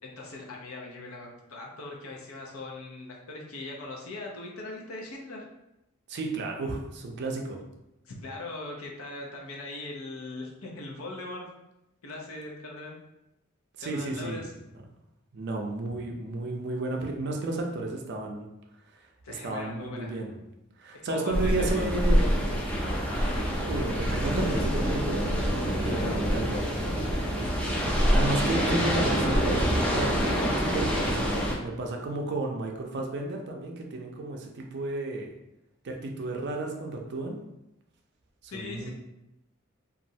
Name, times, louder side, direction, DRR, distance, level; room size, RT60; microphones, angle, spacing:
voice 1, 0.0-5.4 8.0-11.4 12.0-13.0 13.8-14.5 19.2-20.2 21.0-21.9 22.2-22.3 25.9-26.2 38.5-38.9, left 2 dB, 75° left, -1 dB, 0.7 m, -40 dB
voice 2, 6.1-7.6 13.8-14.4 15.3-18.5 19.3-20.4 20.8-22.3 23.7-25.3 25.6-26.7 28.1-30.1 30.6-35.3 35.8-37.4 38.5-38.9, right 2 dB, 55° right, 2 dB, 0.5 m, -32 dB
sound 1, 21.3-31.6, equal, 5° left, 0.4 m, -26 dB
3.0 x 2.5 x 2.7 m, 0.91 s
head